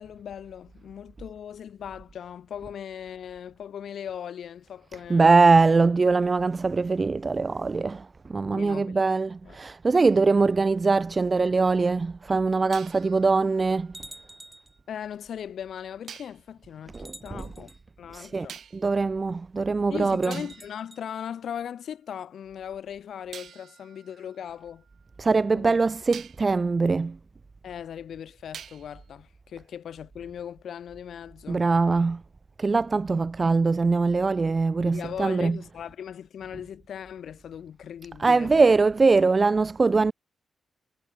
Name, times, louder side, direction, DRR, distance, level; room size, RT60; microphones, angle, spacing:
voice 1, 0.0-5.3 8.5-9.0 9.4-9.6 14.9-17.7 18.0-18.6 19.9-24.8 25.5-25.7 27.6-31.7 34.8-38.8, left 9 dB, 75° left, 0.8 m, -38 dB
voice 2, 4.9-13.9 16.9-17.4 18.1-18.5 18.7-20.5 25.2-27.2 31.5-32.2 32.6-35.6 38.2-40.1, right 4 dB, 25° right, 0.3 m, -22 dB
sound 1, 10.1-11.5 12.7-14.8 16.1-16.5 18.5-19.0 19.8-19.9 20.3-21.9 23.3-25.5 26.1-26.5 28.5-29.1, right 8 dB, 65° right, 1.2 m, -48 dB
sound 2, 13.9-14.8 15.9-16.0 16.9-17.8 20.1-21.0, right 1 dB, 10° right, 2.5 m, -47 dB
wide cardioid pair, 155°, 0 cm